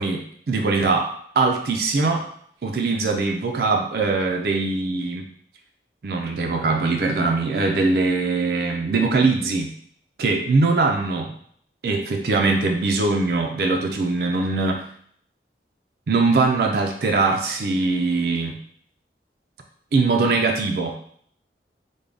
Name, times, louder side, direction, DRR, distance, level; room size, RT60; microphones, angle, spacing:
voice 1, 0.0-2.3 2.6-5.3 6.0-9.7 10.2-11.3 11.8-14.8 16.1-18.6 19.9-21.0, right 3 dB, 60° right, 2 dB, 0.4 m, -22 dB
3.4 x 2.2 x 3.7 m, 0.62 s
head